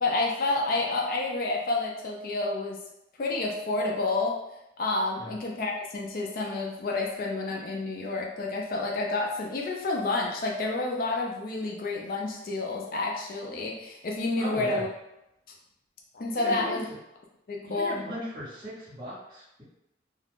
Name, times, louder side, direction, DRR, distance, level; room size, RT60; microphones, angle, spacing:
voice 1, 0.0-2.8 3.2-4.4 4.8-14.9 16.1-16.8 17.5-18.0, left 2 dB, 50° left, -1 dB, 0.4 m, -29 dB
voice 2, 14.4-14.8 16.4-16.8 17.6-19.6, equal, 25° right, -11 dB, 1.2 m, -37 dB
2.4 x 2.2 x 3.4 m, 0.87 s
head